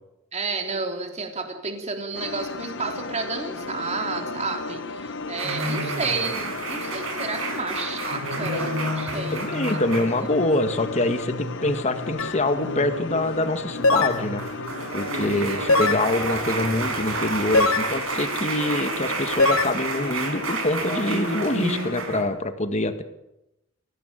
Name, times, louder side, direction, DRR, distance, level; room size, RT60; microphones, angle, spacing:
voice 1, 0.3-9.8 10.2-10.3 15.3-15.7, right 4 dB, 35° right, 4 dB, 3.4 m, -31 dB
sound 1, 2.1-22.0, left 4 dB, 60° left, 1.1 m, -36 dB
sound 2, 5.4-22.2, right 2 dB, 85° right, 5.9 m, -30 dB
voice 2, 9.3-14.4 14.9-23.0, left 2 dB, 35° left, 8 dB, 1.9 m, -25 dB
sound 3, 12.2-12.4 13.8-14.2 15.7-16.1 17.5-17.9 19.4-19.7, left 3 dB, 90° left, 1.4 m, -20 dB
24.5 x 17.0 x 9.1 m, 0.91 s
head